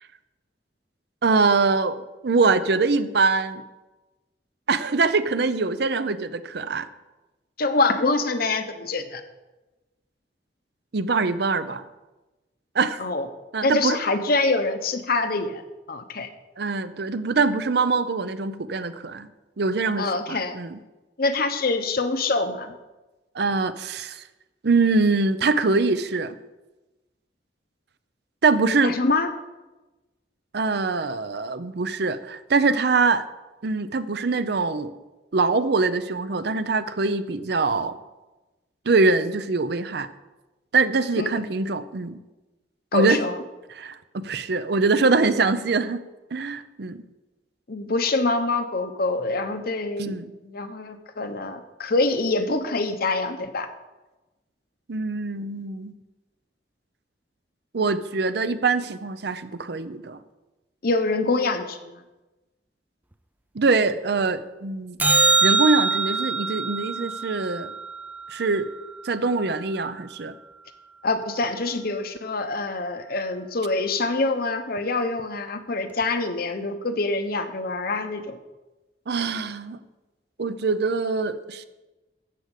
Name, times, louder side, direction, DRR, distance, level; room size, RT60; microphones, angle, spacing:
voice 1, 1.2-3.6 4.7-6.9 10.9-11.8 12.7-13.0 13.5-14.0 16.6-19.3 19.6-20.8 23.3-24.2 24.6-26.4 28.4-29.0 30.5-33.2 33.6-34.9 35.3-37.9 38.9-40.1 40.7-42.2 42.9-43.2 43.7-46.0 46.3-47.0 50.0-50.3 54.9-55.9 57.7-60.2 63.5-65.0 65.4-67.7 68.3-68.7 69.0-70.3 79.1-79.8 80.4-81.6, right 3 dB, 65° right, 12 dB, 0.6 m, -23 dB
voice 2, 7.6-9.2 13.0-13.3 13.6-15.6 15.9-16.3 20.0-20.6 21.2-22.7 28.8-29.3 41.2-41.4 42.9-43.4 47.7-50.2 50.4-53.7 60.8-62.0 71.0-78.4, left 3 dB, 60° left, 8 dB, 1.0 m, -25 dB
sound 1, 65.0-69.5 76.0-76.1, right 3 dB, 10° right, 0.4 m, -24 dB
13.0 x 5.0 x 8.1 m, 1.1 s
head